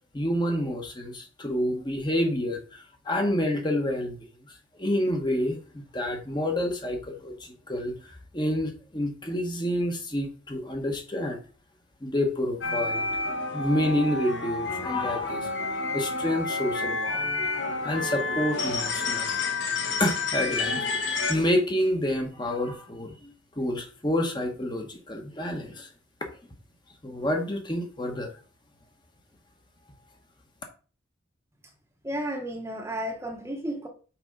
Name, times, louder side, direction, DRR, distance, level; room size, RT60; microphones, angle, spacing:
voice 1, 0.1-4.2 4.8-8.0 8.3-11.4 12.0-13.1 13.5-15.5 15.9-17.3 17.8-19.3 20.0-25.9 27.0-28.3, left 1 dB, 20° left, 1.1 m, -28 dB
sound 1, 12.6-21.3, left 3 dB, 70° left, 1.3 m, -29 dB
voice 2, 32.0-33.9, equal, 15° right, 0.9 m, -32 dB
6.0 x 4.4 x 5.1 m
head